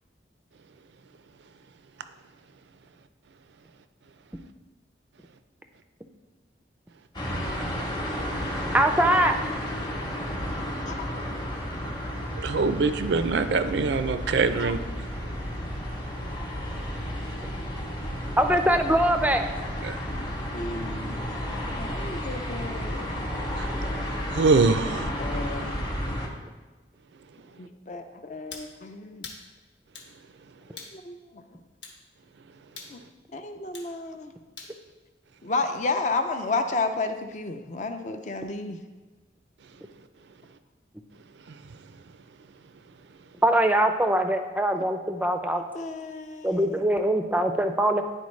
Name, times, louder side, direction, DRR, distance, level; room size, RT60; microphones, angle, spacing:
sound 1, 7.1-26.3, equal, 25° left, 0.9 m, -32 dB
voice 1, 8.7-9.4 18.4-19.5 43.4-45.6 46.4-48.0, right 1 dB, 10° right, 6 dB, 0.4 m, -22 dB
voice 2, 12.4-14.8 19.8-20.0 23.6-23.7 24.3-25.1 41.5-41.6, right 4 dB, 75° right, 11 dB, 0.4 m, -23 dB
voice 3, 20.1-21.2 21.8-23.2 24.3-24.5 25.2-25.7 27.6-29.3 30.9-31.4 32.9-33.0 33.3-34.3 35.4-38.8 45.7-46.8, left 3 dB, 40° left, 7 dB, 0.5 m, -32 dB
sound 2, 28.5-28.7 29.2-29.4 29.9-30.1 30.8-31.0 31.8-32.0 32.8-33.0 33.7-33.9 34.6-34.8, left 4 dB, 80° left, 1.1 m, -42 dB
10.5 x 4.3 x 3.2 m, 1.2 s
head